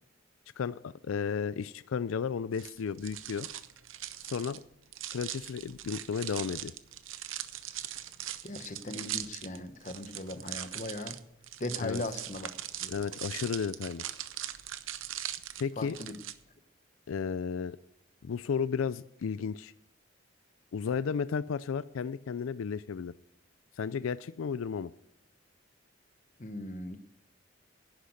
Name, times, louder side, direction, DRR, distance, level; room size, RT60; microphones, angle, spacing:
voice 1, 0.6-3.5 4.3-4.6 5.1-6.7 11.8-12.0 12.9-14.0 15.6-16.0 17.1-17.8 18.2-19.7 20.7-23.1 23.8-24.9, left 6 dB, 85° left, 16 dB, 0.4 m, -33 dB
sound 1, 2.5-16.3, right 12 dB, 80° right, 0.7 m, -40 dB
voice 2, 8.4-11.2 11.6-12.5 12.8-13.1 15.8-16.2 26.4-27.0, left 2 dB, 40° left, 9 dB, 1.0 m, -38 dB
11.0 x 10.0 x 6.5 m, 0.79 s
head